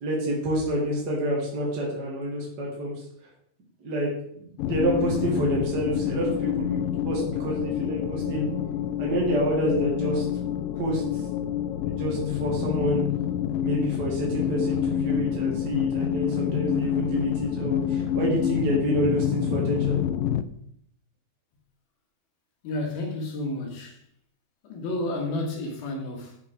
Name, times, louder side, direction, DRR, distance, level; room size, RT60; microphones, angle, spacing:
voice 1, 0.0-3.0 3.8-4.1 4.3-8.5 9.0-10.2 10.8-11.2 11.9-13.0 13.6-20.0, right 1 dB, 45° right, 1.4 m, -28 dB
sound 1, 4.6-20.4, left 10 dB, 90° left, 1.9 m, -27 dB
voice 2, 22.6-24.0 24.6-26.4, left 1 dB, 75° left, 3.5 m, -31 dB
8.0 x 6.6 x 4.9 m
omnidirectional pair, 4.4 m